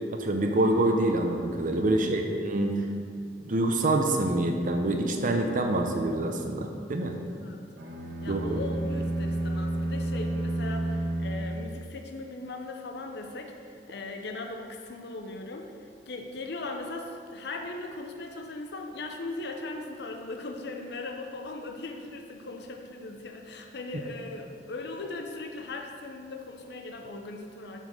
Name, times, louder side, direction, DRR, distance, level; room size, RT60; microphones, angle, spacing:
voice 1, 0.1-2.8 3.4-7.1 8.3-8.6, right 2 dB, 50° right, 4 dB, 0.7 m, -26 dB
voice 2, 1.9-2.3 7.3-7.7 8.2-15.7 16.1-27.8, left 2 dB, 65° left, 3 dB, 0.7 m, -39 dB
sound 1, 7.8-12.1, right 1 dB, 75° right, 1.3 m, -31 dB
7.4 x 5.5 x 6.3 m, 2.2 s
head